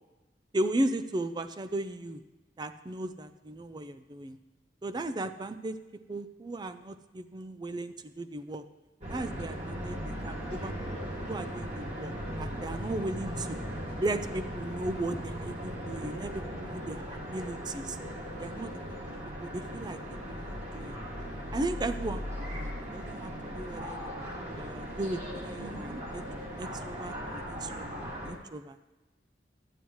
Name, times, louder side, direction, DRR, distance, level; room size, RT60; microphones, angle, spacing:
voice 1, 0.5-2.2 2.6-4.4 4.8-5.8 6.1-8.6 9.1-10.7 11.1-13.6 14.0-18.0 18.4-19.0 19.4-20.0 20.4-21.0 21.5-24.1 24.6-28.8, right 2 dB, 25° right, 10 dB, 0.4 m, -36 dB
sound 1, 9.0-28.3, equal, 40° right, 2.3 m, -38 dB
12.5 x 9.5 x 3.1 m, 1.1 s
head